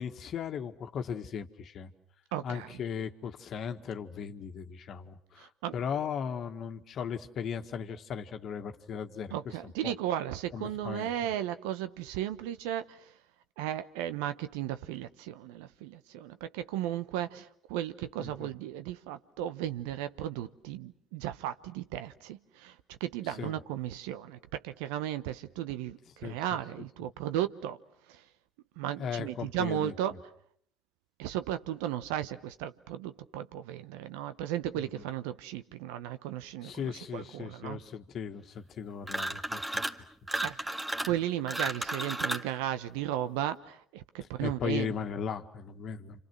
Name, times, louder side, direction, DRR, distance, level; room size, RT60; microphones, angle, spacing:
voice 1, 0.0-1.9 2.4-9.9 10.5-11.3 18.2-18.5 23.4-23.6 26.2-26.4 29.0-29.9 34.7-35.0 36.6-39.8 44.4-46.2, left 7 dB, 55° left, 7 dB, 1.7 m, -37 dB
voice 2, 2.3-2.7 5.4-5.8 9.3-13.1 13.6-27.8 28.1-28.2 28.8-30.2 31.2-37.8 40.4-44.9, right 12 dB, 75° right, 12 dB, 1.0 m, -35 dB
sound 1, 39.0-40.0 40.3-42.5, right 1 dB, 15° right, 1.9 m, -33 dB
30.0 x 27.0 x 6.1 m, 0.64 s
hypercardioid pair, 60°, 0 cm